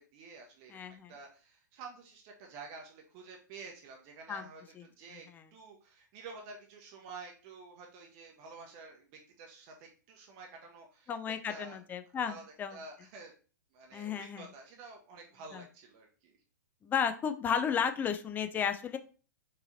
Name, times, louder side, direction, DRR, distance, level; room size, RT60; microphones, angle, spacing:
voice 1, 0.0-11.8 12.2-13.3 13.7-16.4, right 4 dB, 40° right, 1 dB, 0.8 m, -50 dB
voice 2, 0.7-1.1 4.3-4.5 4.8-4.9 5.3-5.4 11.1-12.8 13.9-14.4 15.5-15.6 16.8-19.0, left 7 dB, 15° left, 9 dB, 0.4 m, -33 dB
4.6 x 3.1 x 2.7 m, 0.38 s
figure-of-eight pair, 110°, 11 cm